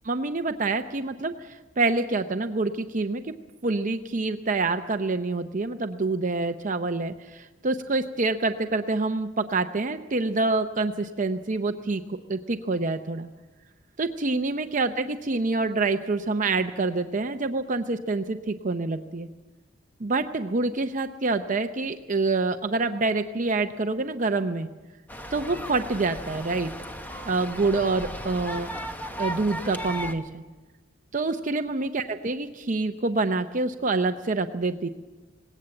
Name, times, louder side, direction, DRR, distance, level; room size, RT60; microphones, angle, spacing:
voice 1, 0.0-3.3 3.6-13.3 14.0-19.3 20.0-24.7 25.3-26.7 27.2-28.7 29.2-30.4 31.1-34.9, right 3 dB, 40° right, 7 dB, 0.7 m, -27 dB
sound 1, 25.1-30.1, equal, 10° left, 1.2 m, -36 dB
19.5 x 17.5 x 7.7 m, 1.2 s
head